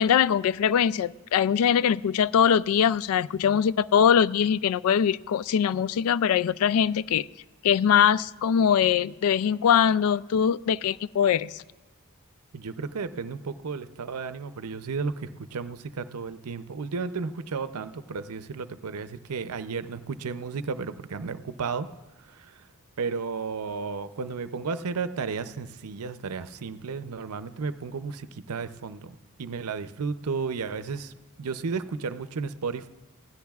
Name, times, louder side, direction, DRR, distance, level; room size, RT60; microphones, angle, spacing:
voice 1, 0.0-7.3 7.6-11.6, left 8 dB, 70° left, 19 dB, 0.3 m, -22 dB
voice 2, 12.5-21.9 22.3-22.6 23.0-31.1 31.4-32.9, right 5 dB, 80° right, 12 dB, 0.6 m, -33 dB
20.5 x 16.0 x 2.4 m, 1.1 s
head